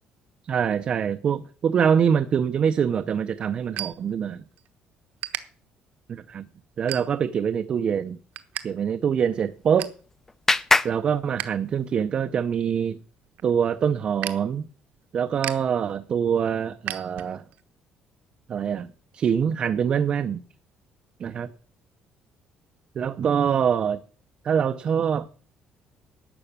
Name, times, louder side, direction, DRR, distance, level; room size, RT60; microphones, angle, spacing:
voice 1, 0.4-4.4 6.1-6.5 6.8-8.2 8.6-9.9 10.8-13.0 13.4-14.7 15.1-17.4 18.5-18.9 19.1-20.4 21.2-21.5 23.0-24.0 24.4-25.3, right 7 dB, 35° right, 0.6 m, -24 dB
sound 1, 2.7-4.7 5.0-5.4 6.0-6.2 6.7-7.4 7.8-8.7 8.9-9.0 9.4-10.0 10.5-11.5 11.8-17.6, right 13 dB, 70° right, 1.1 m, -37 dB
Clapping, 9.4-12.0, left 3 dB, 15° left, 0.5 m, -27 dB
12.0 x 7.0 x 8.6 m
cardioid pair, 165°, 3 cm